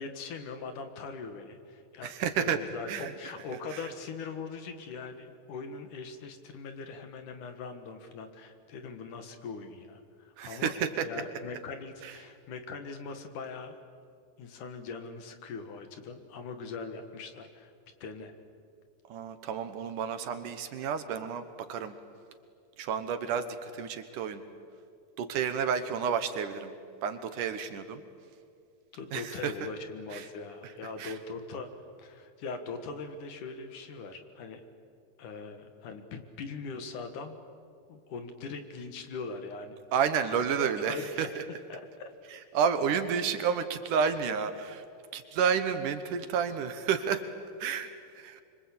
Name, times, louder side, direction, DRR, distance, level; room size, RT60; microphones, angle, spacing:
voice 1, 0.0-2.1 2.4-10.7 11.0-13.8 14.4-17.7 18.0-18.3 28.9-31.7 32.0-34.6 35.2-37.4 37.9-39.8 40.6-41.1 41.7-42.1, left 4 dB, 65° left, 8 dB, 3.0 m, -41 dB
voice 2, 2.0-2.6 2.9-3.1 3.7-3.8 10.4-11.1 12.0-12.1 19.1-22.0 22.8-24.4 25.2-26.7 27.0-28.0 29.1-29.5 30.1-30.3 31.0-31.1 39.9-41.4 42.5-44.8 45.1-47.2 47.6-48.4, right 7 dB, 70° right, 9 dB, 2.5 m, -30 dB
25.5 x 24.5 x 8.6 m, 2.4 s
omnidirectional pair, 4.1 m